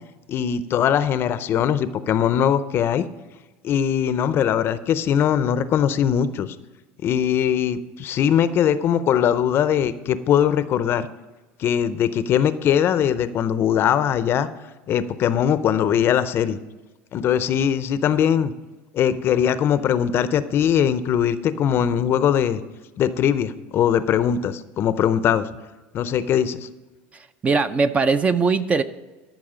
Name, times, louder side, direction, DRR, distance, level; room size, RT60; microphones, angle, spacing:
voice 1, 0.3-3.1 3.6-6.6 7.0-11.1 11.6-14.5 14.9-16.6 17.1-18.5 18.9-22.6 23.0-25.5 25.9-26.7, left 9 dB, 45° left, 13 dB, 0.6 m, -21 dB
voice 2, 27.4-28.8, right 4 dB, 25° right, 12 dB, 0.5 m, -20 dB
13.0 x 5.9 x 5.0 m, 1.2 s
supercardioid pair, 115°, 6 cm